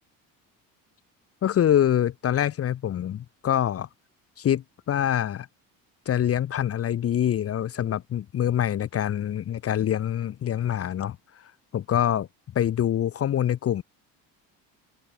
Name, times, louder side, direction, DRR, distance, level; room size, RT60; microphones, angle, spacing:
voice 1, 1.4-3.9 4.4-5.5 6.1-11.2 11.7-12.3 12.5-13.8, left 10 dB, 40° left, 1.3 m, -25 dB
open air
cardioid pair, 125°, 35 cm